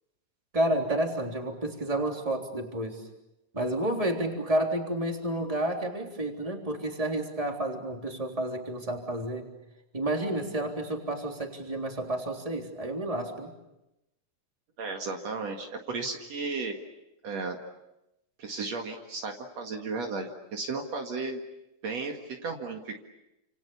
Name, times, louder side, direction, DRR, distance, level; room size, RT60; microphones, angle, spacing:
voice 1, 0.5-3.0 3.5-9.5 9.9-13.5, right 1 dB, 10° right, 2 dB, 3.5 m, -30 dB
voice 2, 14.8-16.8 17.2-17.6 18.4-21.4 21.8-23.0, right 3 dB, 60° right, 2 dB, 3.0 m, -34 dB
30.0 x 28.0 x 7.1 m, 0.91 s
omnidirectional pair, 3.5 m